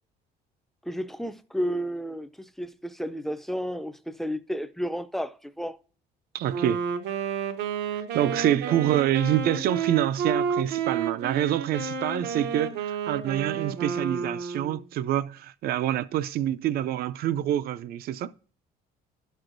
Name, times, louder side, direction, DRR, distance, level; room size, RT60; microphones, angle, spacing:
voice 1, 0.8-5.8 8.7-8.8, equal, ahead, 0.4 m, -32 dB
voice 2, 6.3-6.8 7.9-18.3, right 11 dB, 65° right, 0.5 m, -26 dB
Wind instrument woodwind instrument, 6.5-14.8, right 6 dB, 90° right, 0.8 m, -31 dB
11.5 x 6.3 x 2.6 m
cardioid pair, 110°, 17 cm